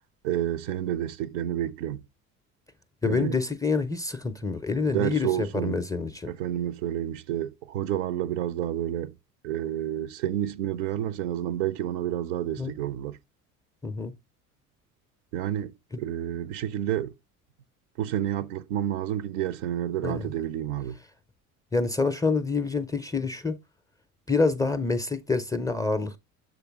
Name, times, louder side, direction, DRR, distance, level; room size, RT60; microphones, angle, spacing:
voice 1, 0.2-2.0 3.0-3.4 4.9-5.8 6.3-9.1 9.4-13.2 15.3-17.1 18.0-21.0, right 11 dB, 60° right, 0.5 m, -30 dB
voice 2, 3.0-6.3 12.6-12.7 13.8-14.1 15.9-16.0 20.0-20.3 21.7-23.6 24.3-26.2, left 4 dB, 10° left, 0.4 m, -27 dB
6.8 x 3.9 x 3.4 m
figure-of-eight pair, 60°, 42 cm